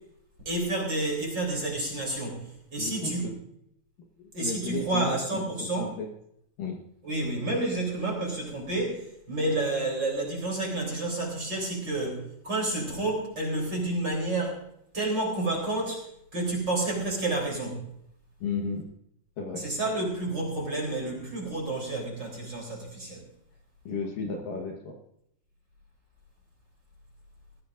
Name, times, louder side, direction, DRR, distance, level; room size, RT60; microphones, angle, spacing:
voice 1, 0.5-2.4 2.7-3.3 4.3-5.9 7.0-14.6 14.9-16.0 16.3-17.8 19.6-23.3, right 2 dB, 25° right, 0 dB, 3.7 m, -30 dB
voice 2, 2.8-3.4 4.2-6.1 6.6-6.8 18.4-18.9 19.4-19.6 23.9-25.0, left 4 dB, 65° left, 1 dB, 2.6 m, -34 dB
21.0 x 15.5 x 2.6 m, 0.74 s
omnidirectional pair, 4.9 m